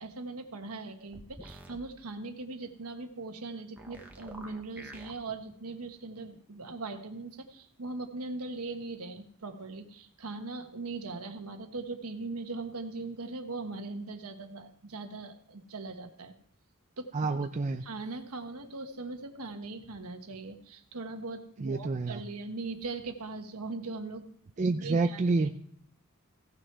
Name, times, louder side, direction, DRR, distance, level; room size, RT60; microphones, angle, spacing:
voice 1, 0.0-16.3 17.0-17.1 17.8-24.3 24.6-25.5, right 3 dB, 90° right, 6 dB, 1.3 m, -40 dB
sound 1, 1.1-1.8 3.8-5.1, right 1 dB, 5° right, 1.1 m, -47 dB
voice 2, 17.1-17.8 21.6-22.2 24.6-25.5, right 3 dB, 35° right, 6 dB, 0.4 m, -28 dB
16.5 x 6.3 x 4.5 m, 0.65 s
head